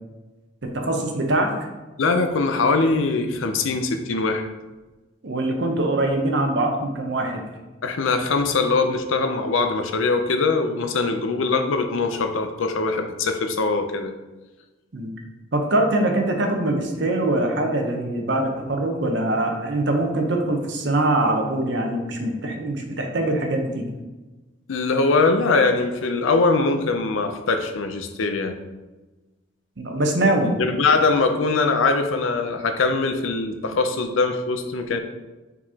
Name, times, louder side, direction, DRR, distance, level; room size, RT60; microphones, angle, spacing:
voice 1, 0.6-1.5 5.2-7.4 14.9-15.1 15.5-23.8 29.8-30.6, right 1 dB, 60° right, 3 dB, 0.7 m, -23 dB
voice 2, 2.0-4.5 7.8-14.1 24.7-28.6 30.6-35.0, left 3 dB, 85° left, 7 dB, 0.5 m, -22 dB
4.8 x 3.9 x 2.8 m, 1.1 s
head